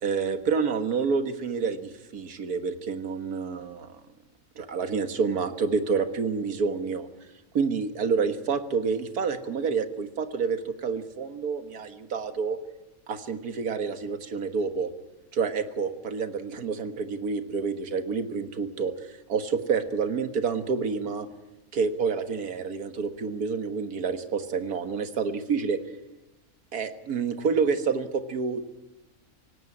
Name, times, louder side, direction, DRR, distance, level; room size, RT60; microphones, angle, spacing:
voice 1, 0.0-4.0 4.6-7.1 7.5-12.6 13.1-14.9 15.3-21.3 21.7-25.8 26.7-28.6, right 5 dB, 85° right, 9 dB, 2.0 m, -28 dB
18.0 x 17.0 x 9.7 m, 1.0 s
omnidirectional pair, 1.6 m